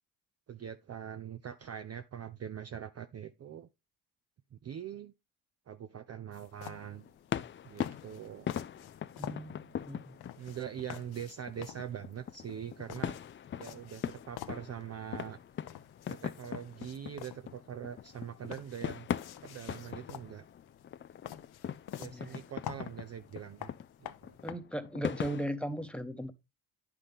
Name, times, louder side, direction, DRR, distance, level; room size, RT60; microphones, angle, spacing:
voice 1, 0.5-3.7 4.5-5.1 5.7-7.1 7.6-8.5 10.4-13.2 13.6-15.4 16.1-19.1 19.4-20.4 22.0-23.7 24.0-24.4, right 9 dB, 30° right, 0.6 m, -43 dB
sound 1, 6.3-24.5, left 12 dB, 50° left, 0.8 m, -49 dB
sound 2, 6.7-25.5, left 9 dB, 25° left, 0.4 m, -41 dB
voice 2, 9.2-10.2 22.0-22.4 24.4-26.3, right 1 dB, ahead, 1.1 m, -38 dB
9.8 x 6.0 x 3.5 m
hypercardioid pair, 55°, 50 cm